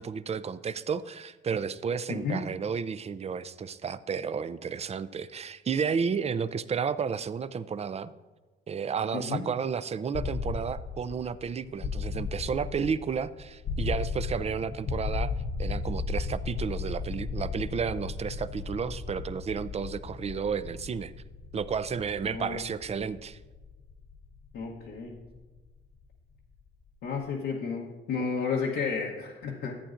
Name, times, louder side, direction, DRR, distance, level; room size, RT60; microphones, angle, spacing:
voice 1, 0.0-8.1 8.7-15.3 15.6-21.1 21.5-23.4, right 6 dB, 35° right, 14 dB, 0.4 m, -32 dB
voice 2, 2.1-2.4 9.1-9.4 22.2-22.6 24.5-25.1 27.0-29.8, left 5 dB, 85° left, -4 dB, 1.1 m, -32 dB
sound 1, 10.1-26.0, left 4 dB, 50° left, 0.7 m, -35 dB
14.0 x 8.6 x 2.6 m, 1.3 s
cardioid pair, 90°, 20 cm